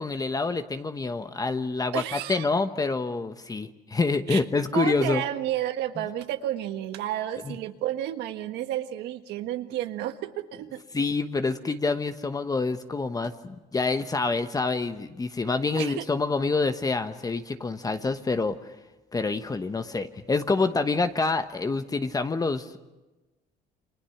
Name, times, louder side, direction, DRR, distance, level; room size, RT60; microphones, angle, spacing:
voice 1, 0.0-5.2 7.5-7.6 10.9-18.6 19.1-22.8, left 3 dB, 20° left, 9 dB, 1.1 m, -27 dB
voice 2, 1.9-2.5 4.3-4.4 4.7-10.8 15.8-16.0, right 12 dB, 85° right, 8 dB, 1.5 m, -31 dB
29.0 x 25.0 x 5.9 m, 1.1 s
cardioid pair, 110°, 17 cm